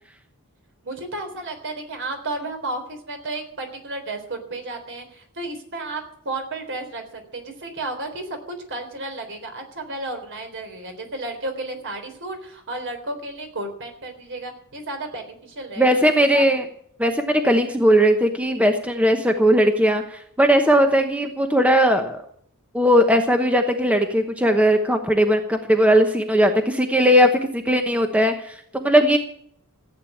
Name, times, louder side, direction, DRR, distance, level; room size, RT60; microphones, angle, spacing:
voice 1, 0.8-16.4, right 2 dB, 55° right, 5 dB, 3.7 m, -33 dB
voice 2, 15.8-16.6 17.0-22.2 22.7-29.2, equal, 5° right, 5 dB, 1.0 m, -18 dB
15.0 x 8.9 x 8.6 m, 0.65 s
head